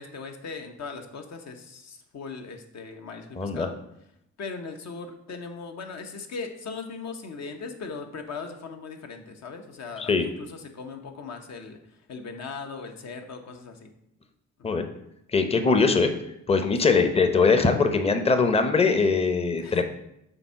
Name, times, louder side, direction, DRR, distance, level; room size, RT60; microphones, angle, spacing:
voice 1, 0.0-3.8 4.4-11.8 12.1-13.9 14.6-14.8 19.6-19.8, left 4 dB, 60° left, 5 dB, 1.0 m, -39 dB
voice 2, 3.4-3.7 10.0-10.2 14.6-14.8 15.3-16.1 16.5-19.8, left 4 dB, 20° left, 8 dB, 0.7 m, -21 dB
7.0 x 3.7 x 5.6 m, 0.80 s
cardioid pair, 90°, 30 cm